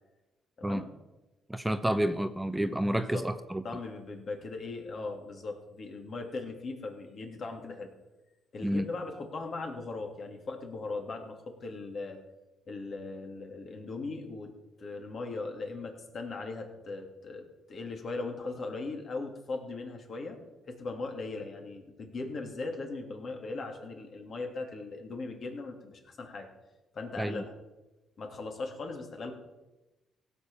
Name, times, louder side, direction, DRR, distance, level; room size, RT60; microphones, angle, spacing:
voice 1, 1.5-3.6 8.6-8.8 27.2-27.4, right 1 dB, 10° right, 10 dB, 0.7 m, -29 dB
voice 2, 3.6-7.9 8.5-12.2 12.7-14.5 14.8-20.4 20.7-26.5 26.9-27.5 28.2-29.3, left 3 dB, 50° left, 3 dB, 2.9 m, -39 dB
16.5 x 7.0 x 7.0 m, 1.0 s
cardioid pair, 90°, 0 cm